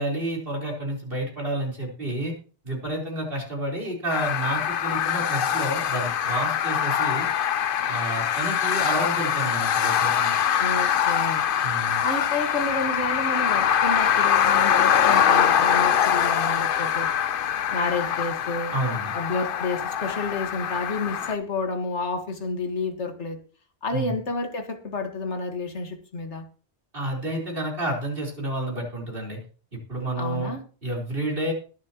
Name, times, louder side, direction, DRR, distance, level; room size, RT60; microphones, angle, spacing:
voice 1, 0.0-2.3 2.6-7.3 7.9-10.4 11.6-12.0 18.7-19.2 23.9-24.1 26.9-29.4 29.7-30.5 30.8-31.5, right 1 dB, 55° right, -1 dB, 4.4 m, -30 dB
sound 1, 4.1-21.4, left 9 dB, 60° left, 0.8 m, -23 dB
voice 2, 10.6-11.5 12.0-17.1 17.7-18.7 19.1-23.4 23.8-26.4 30.2-30.6, left 3 dB, 90° left, 6 dB, 2.0 m, -30 dB
21.0 x 7.5 x 3.0 m, 0.38 s
omnidirectional pair, 1.1 m